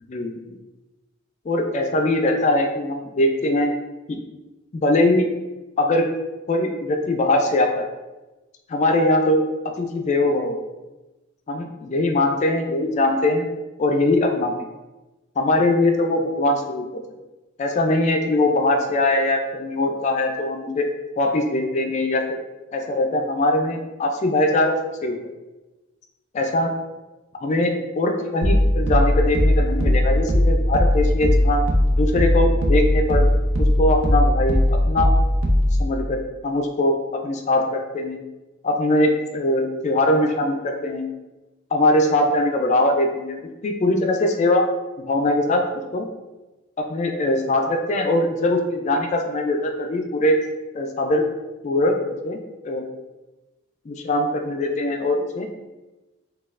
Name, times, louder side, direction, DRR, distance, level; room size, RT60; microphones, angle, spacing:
voice 1, 0.1-0.6 1.5-3.7 4.1-4.2 4.7-5.3 5.8-6.0 6.5-7.9 8.7-9.4 9.8-10.6 11.5-13.5 13.8-14.7 15.4-17.0 17.6-20.9 21.2-22.4 22.7-25.2 26.3-26.7 27.4-31.6 31.9-33.3 33.6-35.1 35.8-37.0 37.2-38.2 38.6-41.1 41.7-44.7 45.1-45.6 45.9-46.1 46.8-50.4 50.7-51.2 51.6-51.9 52.2-52.4 52.6-52.8 53.9-55.5, left 1 dB, 35° left, 3 dB, 0.3 m, -21 dB
sound 1, 28.4-35.9, left 1 dB, 70° right, 0.5 m, -19 dB
4.1 x 2.3 x 2.4 m, 1.1 s
head